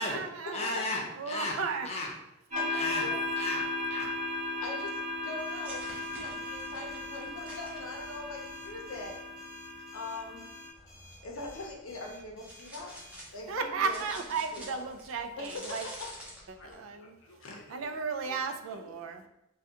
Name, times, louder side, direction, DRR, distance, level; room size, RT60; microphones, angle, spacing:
voice 1, 0.0-0.6 1.2-1.9 13.5-15.9 16.5-17.2 17.7-19.3, right 5 dB, 75° right, 7 dB, 0.3 m, -34 dB
voice 2, 0.5-1.6 1.8-2.1 2.7-3.0 3.4-4.1, left 2 dB, 35° left, -1 dB, 0.6 m, -34 dB
voice 3, 2.5-3.2 4.6-9.2 9.9-10.5 11.2-12.9 13.3-14.0 14.5-14.9 15.4-16.1 16.6-18.4 18.7-19.0, left 2 dB, 80° left, 1 dB, 0.6 m, -42 dB
sound 1, 2.5-10.7, left 2 dB, 35° right, 1.0 m, -36 dB
sound 2, 5.4-13.2, left 1 dB, 15° left, 1.0 m, -56 dB
sound 3, 5.6-9.1 10.7-16.7, equal, 5° right, 0.7 m, -49 dB
3.4 x 2.3 x 2.7 m, 0.84 s
head